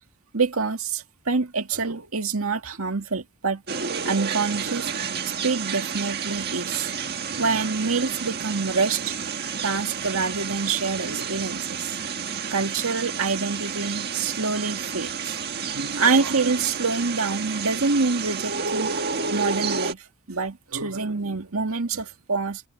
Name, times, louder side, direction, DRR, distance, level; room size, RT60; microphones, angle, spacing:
voice 1, 0.3-3.6 4.1-6.9 7.3-9.2 9.6-12.0 12.5-15.4 15.7-18.9 19.3-22.6, right 4 dB, 75° right, 2.1 m, -26 dB
sound 1, 3.7-19.9, right 6 dB, 50° right, 1.6 m, -30 dB
head